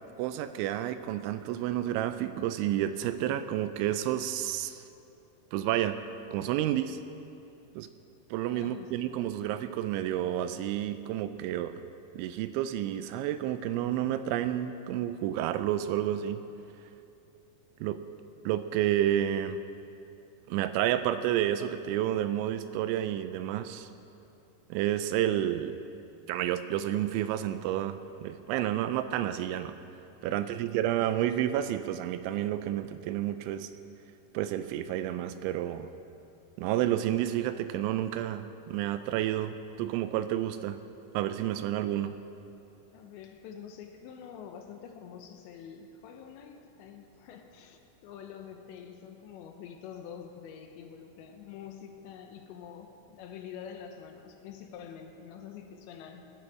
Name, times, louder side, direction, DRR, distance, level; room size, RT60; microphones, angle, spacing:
voice 1, 0.2-4.8 5.5-6.0 6.3-7.0 7.8-7.9 8.3-11.7 12.1-16.4 17.8-18.0 18.5-19.6 20.5-23.9 24.7-25.8 26.3-29.8 30.2-33.7 34.3-35.9 36.6-40.8 41.1-42.2, right 12 dB, 85° right, 11 dB, 2.8 m, -30 dB
voice 2, 8.5-9.1 30.3-30.6 42.9-56.3, left 8 dB, 80° left, 5 dB, 2.9 m, -46 dB
18.5 x 12.5 x 4.8 m, 2.7 s
omnidirectional pair, 5.6 m